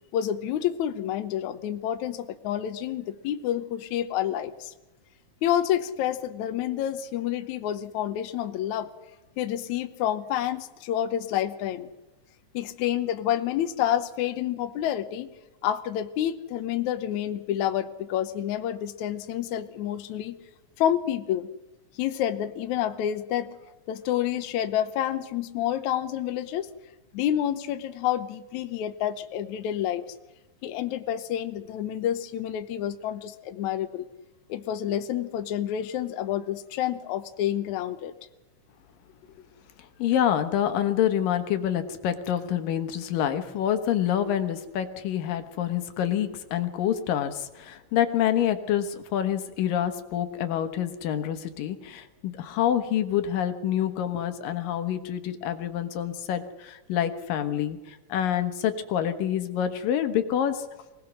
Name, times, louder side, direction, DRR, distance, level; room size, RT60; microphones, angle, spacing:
voice 1, 0.1-4.7 5.4-8.9 9.4-11.9 12.5-15.3 15.6-20.4 20.8-21.5 22.0-23.5 23.9-26.7 27.1-30.0 30.6-34.1 34.5-38.1, left 11 dB, 70° left, 8 dB, 2.2 m, -28 dB
voice 2, 40.0-60.7, left 10 dB, 85° left, 8 dB, 3.0 m, -27 dB
24.5 x 18.5 x 6.3 m, 1.0 s
omnidirectional pair, 3.8 m